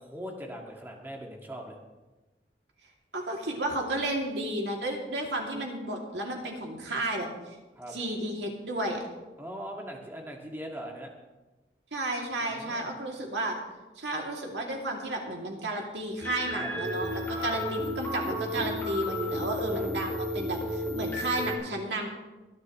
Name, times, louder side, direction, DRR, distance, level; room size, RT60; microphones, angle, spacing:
voice 1, 0.0-1.8 7.8-8.0 9.4-11.1 12.4-12.9 16.5-16.7 17.3-17.5 19.7-19.9, equal, 10° right, 0 dB, 1.9 m, -40 dB
voice 2, 3.1-7.3 7.9-9.0 11.9-13.6 14.0-22.1, right 1 dB, 85° right, 0 dB, 2.6 m, -32 dB
sound 1, 16.2-21.5, equal, 15° left, 3.2 m, -33 dB
24.0 x 10.5 x 3.1 m, 1.1 s
head